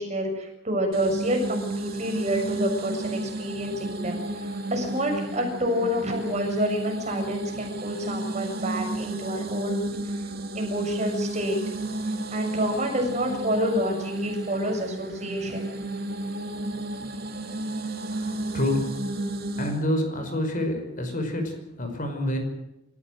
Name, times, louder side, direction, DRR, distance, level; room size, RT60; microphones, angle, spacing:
voice 1, 0.0-11.6 12.3-15.7, equal, 35° right, 3 dB, 7.0 m, -28 dB
sound 1, 0.9-19.8, right 1 dB, 50° right, 2.6 m, -32 dB
voice 2, 18.1-19.1 19.6-22.4, left 1 dB, 40° left, 5 dB, 5.5 m, -28 dB
28.5 x 15.0 x 7.9 m, 0.90 s
head